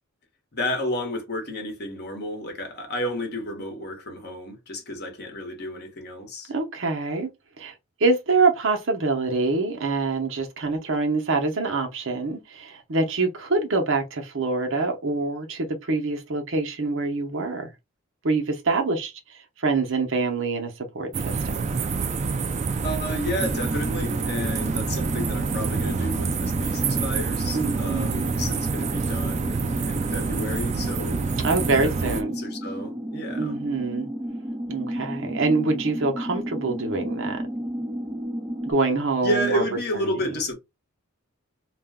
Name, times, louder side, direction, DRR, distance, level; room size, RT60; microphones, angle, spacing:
voice 1, 0.5-6.5 22.8-31.3 31.7-33.6 39.2-40.5, equal, 50° left, 1.1 m, -31 dB
voice 2, 6.5-7.3 7.6-7.7 8.0-17.7 18.2-21.7 27.5-28.3 31.4-32.3 33.4-34.1 34.7-37.4 38.7-39.6 39.9-40.1, right 3 dB, 65° right, 0.8 m, -25 dB
sound 1, 21.1-32.2, right 4 dB, 35° right, 0.3 m, -27 dB
sound 2, 23.4-38.7, equal, 10° right, 0.7 m, -33 dB
2.5 x 2.2 x 3.5 m
head